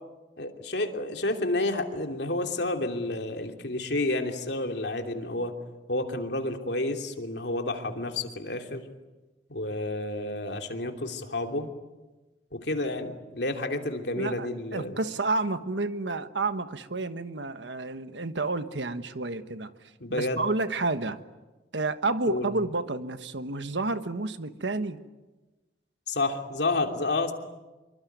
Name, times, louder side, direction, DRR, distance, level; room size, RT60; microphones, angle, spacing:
voice 1, 0.4-5.5 5.9-8.9 9.5-11.7 12.5-15.0 20.0-20.4 22.3-22.5 26.1-27.3, left 2 dB, 70° left, 4 dB, 3.0 m, -30 dB
voice 2, 14.2-19.7 20.1-21.2 21.7-25.0, right 3 dB, 85° right, 10 dB, 1.4 m, -30 dB
26.5 x 24.0 x 9.4 m, 1.1 s
head